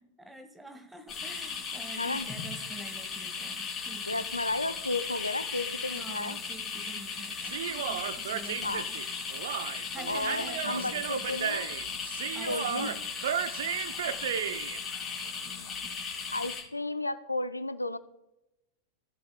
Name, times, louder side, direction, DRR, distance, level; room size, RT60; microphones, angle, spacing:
voice 1, 0.0-4.3 5.9-9.0 9.9-11.3 12.3-12.9, right 1 dB, 5° right, 7 dB, 1.3 m, -47 dB
sound 1, 1.1-16.6, left 5 dB, 20° left, 3.8 m, -37 dB
voice 2, 2.0-2.3 4.1-6.4 8.6-8.9 10.1-11.7 12.5-12.9 16.3-18.0, left 2 dB, 85° left, 13 dB, 0.5 m, -33 dB
Human voice, 7.4-14.8, right 9 dB, 60° right, 0.4 m, -34 dB
17.5 x 7.7 x 2.2 m, 0.93 s
figure-of-eight pair, 90°, 0 cm